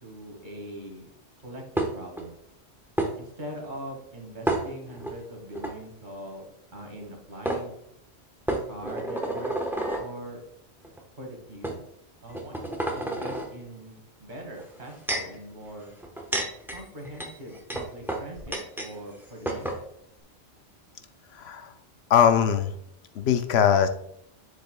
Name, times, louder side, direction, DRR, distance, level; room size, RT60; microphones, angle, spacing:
voice 1, 0.0-1.1 1.4-2.4 3.2-6.5 6.7-7.7 8.7-9.5 10.0-10.4 11.2-11.8 12.2-15.9 16.7-19.8, equal, 45° right, 1 dB, 1.9 m, -41 dB
sound 1, 1.8-2.2 3.0-3.1 4.5-5.1 5.5-5.7 7.0-7.1 7.5-7.6 8.5-10.1 10.8-11.0 11.6-11.8 12.3-13.5 14.6-15.4 16.0-18.9 19.2-19.3 19.5-19.8, right 1 dB, ahead, 0.9 m, -30 dB
voice 2, 21.3-21.7 22.1-22.7 23.1-23.9, left 8 dB, 75° left, 9 dB, 0.8 m, -21 dB
7.2 x 7.0 x 2.2 m, 0.72 s
omnidirectional pair, 1.1 m